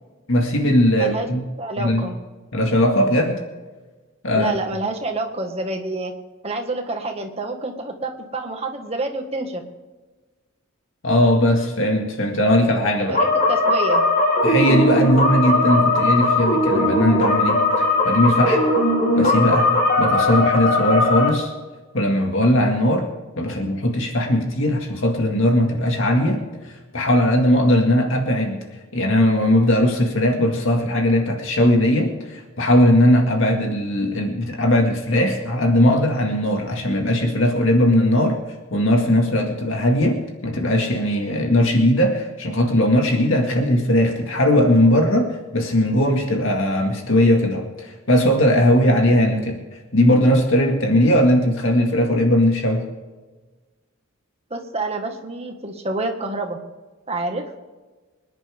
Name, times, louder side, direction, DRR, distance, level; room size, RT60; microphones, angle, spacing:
voice 1, 0.3-1.4 1.8-2.0 2.5-3.4 4.2-4.5 11.0-13.2 14.4-18.6 19.2-19.7 20.0-21.5 21.9-23.1 23.4-28.6 28.9-38.4 38.7-49.6 49.9-52.8, left 1 dB, 65° left, 2 dB, 2.1 m, -19 dB
voice 2, 1.6-2.2 4.3-6.1 6.4-9.6 13.1-14.1 54.5-56.6 57.1-57.5, right 2 dB, 30° right, 3 dB, 1.8 m, -28 dB
sound 1, 13.1-21.3, left 2 dB, 40° left, 3.4 m, -19 dB
25.5 x 10.5 x 3.6 m, 1.3 s
head